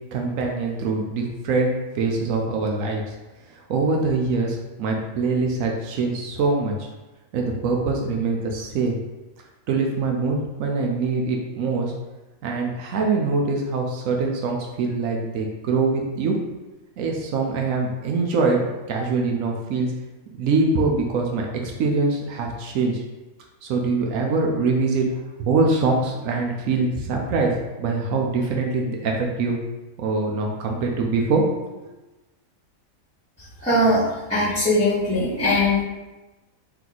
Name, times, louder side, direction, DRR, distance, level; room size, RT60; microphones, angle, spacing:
voice 1, 0.1-3.0 3.5-6.9 7.3-9.0 9.7-11.9 12.4-16.4 17.0-19.9 20.4-23.0 23.6-25.1 25.4-27.5 27.8-29.6 30.0-31.6, right 3 dB, 75° right, 1 dB, 1.0 m, -23 dB
voice 2, 33.6-34.0 34.3-35.8, left 1 dB, 5° left, -15 dB, 1.3 m, -20 dB
3.3 x 3.1 x 3.9 m, 1.1 s
omnidirectional pair, 1.5 m